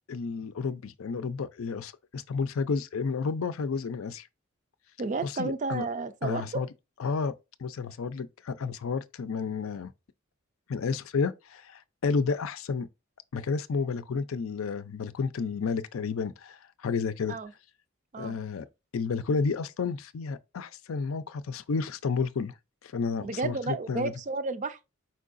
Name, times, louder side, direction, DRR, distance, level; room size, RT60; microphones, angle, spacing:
voice 1, 0.1-4.3 5.2-5.9 6.2-6.7 7.0-7.3 7.6-9.9 10.7-12.9 13.3-17.4 18.2-18.7 18.9-22.5 22.8-24.1, left 5 dB, 75° left, 0.5 m, -31 dB
voice 2, 5.0-6.6 17.3-17.5 18.1-18.3 23.2-24.8, right 3 dB, 35° right, 0.4 m, -32 dB
4.6 x 4.4 x 2.5 m
head